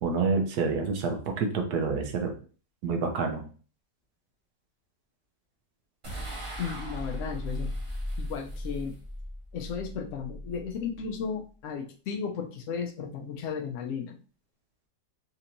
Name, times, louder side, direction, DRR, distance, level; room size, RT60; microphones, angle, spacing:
voice 1, 0.0-2.3 2.8-3.4, right 4 dB, 70° right, 4 dB, 1.1 m, -28 dB
sound 1, 6.0-11.4, equal, 35° right, 0.5 m, -37 dB
voice 2, 6.6-7.7 8.2-8.9 9.5-14.2, left 6 dB, 85° left, 2 dB, 0.6 m, -34 dB
4.2 x 2.9 x 2.5 m, 0.39 s
omnidirectional pair, 1.9 m